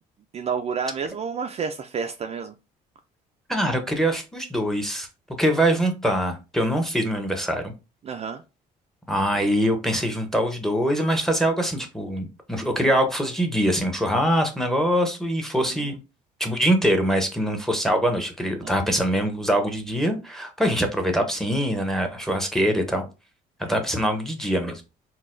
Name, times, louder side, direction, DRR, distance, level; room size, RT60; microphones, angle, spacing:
voice 1, 0.3-2.5 8.0-8.4 15.8-15.9 18.6-18.9, right 6 dB, 40° right, 0.4 m, -30 dB
voice 2, 3.5-5.1 5.4-7.7 9.1-16.0 16.4-23.0 23.7-24.8, equal, ahead, 0.7 m, -23 dB
3.9 x 2.2 x 2.5 m
cardioid pair, 110°, 17 cm